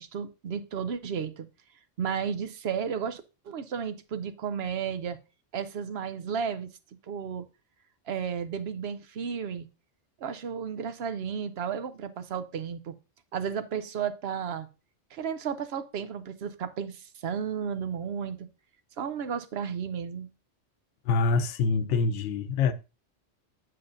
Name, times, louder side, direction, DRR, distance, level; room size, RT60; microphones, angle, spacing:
voice 1, 0.0-1.5 2.0-5.2 5.5-6.7 7.1-7.5 8.1-9.7 10.2-12.9 13.3-14.7 15.1-18.5 19.0-20.3, right 7 dB, 65° right, 0.9 m, -33 dB
voice 2, 21.1-22.7, left 4 dB, 80° left, 1.0 m, -25 dB
7.7 x 7.6 x 2.6 m
omnidirectional pair, 1.2 m